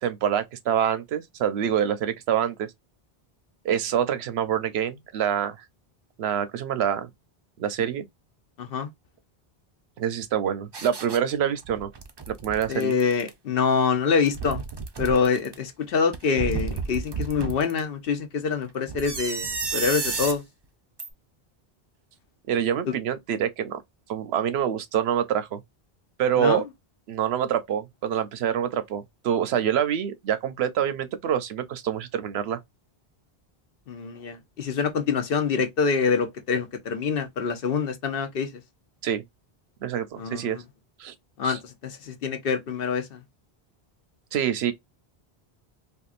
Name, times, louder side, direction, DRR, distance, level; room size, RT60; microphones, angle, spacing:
voice 1, 0.0-2.7 3.6-5.6 6.2-7.1 7.6-8.1 10.0-11.9 12.3-13.0 22.5-23.8 24.1-25.6 26.2-26.6 27.1-32.6 39.0-39.2 39.8-40.6 41.0-41.1 41.4-41.6 44.3-44.7, right 9 dB, 85° right, 0.9 m, -26 dB
voice 2, 8.6-8.9 12.7-14.6 15.0-20.4 22.9-23.0 26.4-26.6 33.9-38.6 40.2-40.6 41.4-43.2, left 5 dB, 65° left, 0.9 m, -25 dB
sound 1, 10.7-11.2 11.6-13.3 14.1-15.6 16.1-17.8 18.9-20.4 21.0-21.1, right 4 dB, 40° right, 0.4 m, -32 dB
3.5 x 2.3 x 2.4 m
omnidirectional pair, 1.0 m